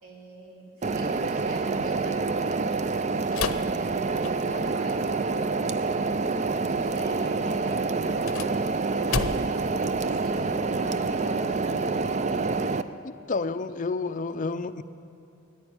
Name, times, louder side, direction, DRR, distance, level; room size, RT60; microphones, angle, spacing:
voice 1, 0.0-3.2 3.5-4.0 4.4-6.2 6.8-8.7 9.2-12.1, right 1 dB, 80° right, -2 dB, 3.3 m, -43 dB
sound 1, 0.8-12.8, right 3 dB, 35° right, 0.4 m, -27 dB
sound 2, 3.3-4.7 8.0-9.7, left 5 dB, 85° left, 0.7 m, -32 dB
voice 2, 13.0-14.8, left 3 dB, 40° left, 11 dB, 0.4 m, -30 dB
15.5 x 10.0 x 8.7 m, 2.8 s
head